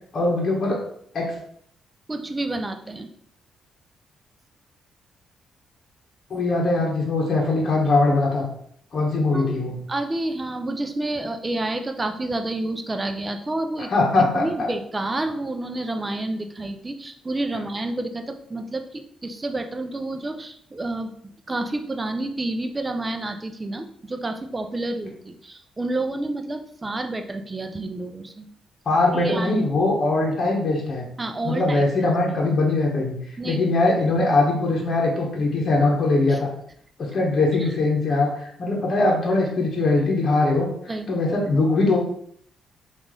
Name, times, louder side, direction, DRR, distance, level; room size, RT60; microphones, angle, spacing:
voice 1, 0.1-0.8 1.1-1.3 6.3-8.5 8.9-9.8 13.9-14.7 28.9-31.1 31.4-33.2 33.4-36.5 37.0-40.7 41.1-42.0, left 2 dB, 50° left, -1 dB, 1.0 m, -21 dB
voice 2, 2.1-3.1 9.3-9.5 9.9-13.9 14.4-21.1 21.5-28.5 29.1-29.6 31.2-31.8 33.4-33.6 36.3-36.4 37.6-37.7 40.9-41.1, right 2 dB, 25° right, 6 dB, 0.4 m, -29 dB
3.0 x 2.5 x 3.7 m, 0.66 s
cardioid pair, 80°, 0 cm